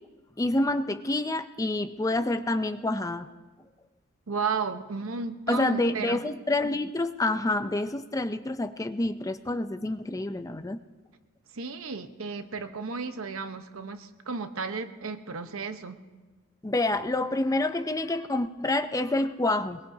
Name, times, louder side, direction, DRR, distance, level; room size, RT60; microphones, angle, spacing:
voice 1, 0.4-3.3 5.5-10.8 16.6-19.8, left 2 dB, 15° left, 10 dB, 0.5 m, -28 dB
voice 2, 4.3-6.2 11.5-16.0, right 4 dB, 75° right, 8 dB, 1.0 m, -33 dB
22.0 x 21.5 x 2.8 m, 1.3 s
head